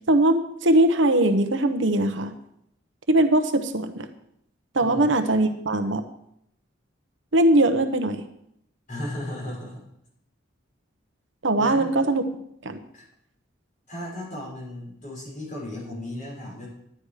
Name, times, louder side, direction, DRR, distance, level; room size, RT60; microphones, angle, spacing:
voice 1, 0.1-2.3 3.1-4.1 4.7-6.0 7.3-8.2 11.4-12.2 12.6-12.8, right 1 dB, 65° right, 8 dB, 1.0 m, -21 dB
voice 2, 4.8-5.1 8.9-9.8 11.6-11.9 12.9-13.0 13.9-16.7, left 1 dB, 40° left, -3 dB, 5.8 m, -35 dB
11.5 x 10.5 x 4.9 m, 0.76 s
head